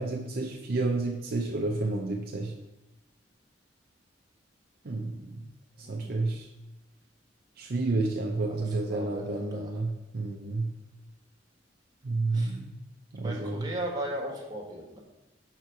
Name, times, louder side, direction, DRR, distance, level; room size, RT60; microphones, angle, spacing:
voice 1, 0.0-2.5 4.8-5.2 5.9-6.5 7.6-10.7 12.0-12.7 13.2-13.6, right 2 dB, 55° right, 1 dB, 0.6 m, -30 dB
voice 2, 5.8-6.2 8.5-9.8 12.3-12.5 13.2-15.0, right 1 dB, 20° right, -2 dB, 1.4 m, -37 dB
6.6 x 4.5 x 4.6 m, 0.96 s
head